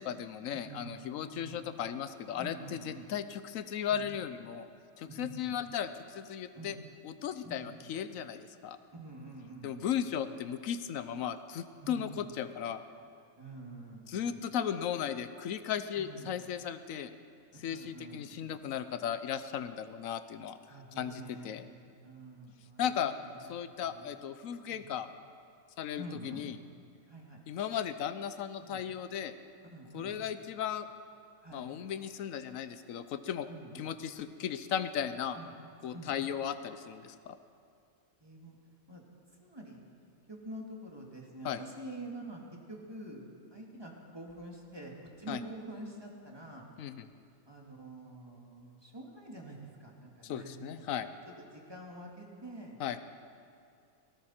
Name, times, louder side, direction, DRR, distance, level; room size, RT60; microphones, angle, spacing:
voice 1, 0.0-4.7 5.0-6.8 7.0-8.8 9.6-12.8 14.1-17.1 17.6-20.6 21.0-21.6 22.8-23.1 23.4-25.1 25.8-26.5 27.5-29.3 29.9-30.9 31.5-33.5 33.7-35.4 35.8-37.4 41.4-41.6 45.3-45.4 46.8-47.1 50.2-51.1 52.8-53.0, left 9 dB, 85° left, 11 dB, 1.1 m, -36 dB
voice 2, 0.6-1.6 2.4-3.1 3.9-4.1 5.1-5.6 6.5-6.8 7.4-7.8 8.9-9.9 10.1-10.3 11.8-12.3 13.4-14.4 15.9-16.3 17.5-18.6 20.7-22.8 23.2-24.1 24.7-24.9 26.0-26.4 27.1-27.4 28.7-28.8 29.7-30.2 31.4-31.7 33.5-33.8 35.3-35.6 35.9-36.1 38.2-38.6 38.9-39.0 39.4-39.8 40.3-46.7 47.5-50.9 51.3-53.0, right 1 dB, 20° right, -1 dB, 2.2 m, -47 dB
18.0 x 17.0 x 4.4 m, 2.4 s
omnidirectional pair, 1.4 m